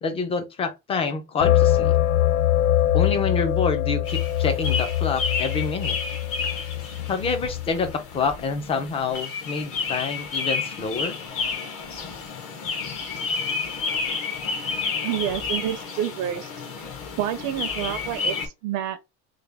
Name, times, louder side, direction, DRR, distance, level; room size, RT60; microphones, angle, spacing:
voice 1, 0.0-2.0 2.9-6.0 7.1-11.2, left 5 dB, 20° left, 0.4 m, -27 dB
sound 1, 1.4-7.9, left 12 dB, 85° left, 0.6 m, -23 dB
sound 2, 4.0-18.5, left 4 dB, 40° left, 0.8 m, -31 dB
voice 2, 15.0-16.5 16.8-16.9 17.2-19.0, right 11 dB, 55° right, 0.5 m, -28 dB
3.3 x 2.2 x 3.3 m
cardioid pair, 175°, 34 cm